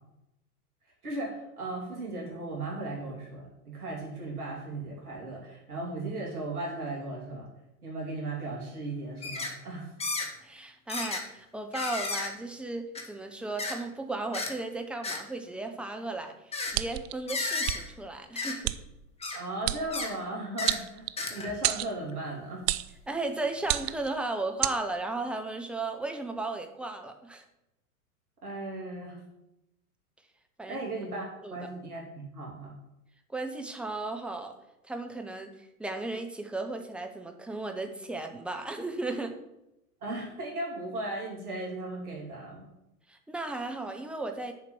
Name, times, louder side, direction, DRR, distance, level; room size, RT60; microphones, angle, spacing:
voice 1, 1.0-7.5 7.8-9.9 19.3-22.7 28.4-29.2 30.7-32.7 40.0-42.6, right 2 dB, 75° right, -3 dB, 3.0 m, -36 dB
sound 1, 9.2-9.5 10.0-10.3 10.9-11.2 11.7-12.3 13.0-13.1 13.6-13.8 14.3-14.5 15.0-15.2 16.5-16.7 17.3-17.8 18.4-18.6 19.2-19.4 19.9-20.1 20.6-20.8 21.2-21.6 22.1-22.2, left 3 dB, 15° left, 1.2 m, -33 dB
voice 2, 10.4-18.7 23.1-27.4 30.6-30.8 31.4-31.6 33.3-34.5 34.8-39.3 43.1-44.5, right 2 dB, ahead, 4 dB, 0.7 m, -35 dB
sound 2, 16.7-17.1 17.6-17.8 18.6-18.8 19.6-19.8 20.7-21.3 21.6-21.9 22.7-22.9 23.6-24.1 24.6-24.8, right 15 dB, 45° right, 0.4 m, -29 dB
6.9 x 4.8 x 7.0 m, 0.88 s
hypercardioid pair, 100°, 44 cm